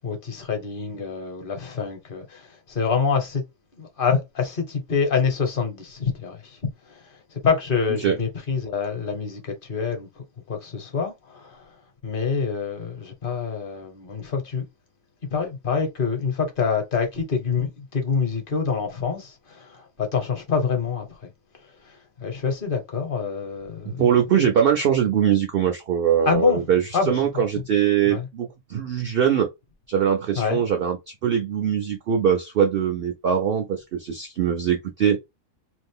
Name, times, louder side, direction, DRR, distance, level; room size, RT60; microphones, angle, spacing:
voice 1, 0.0-3.4 3.8-6.6 6.9-7.0 7.3-10.1 10.5-11.6 12.0-14.7 15.3-21.3 21.9-24.0 26.2-26.6 26.9-27.6 28.0-28.3 30.4-30.6, left 5 dB, 45° left, 1.1 m, -26 dB
voice 2, 24.0-29.5 29.9-31.0 31.2-35.2, right 8 dB, 60° right, 0.6 m, -22 dB
2.7 x 2.4 x 3.6 m
omnidirectional pair, 1.4 m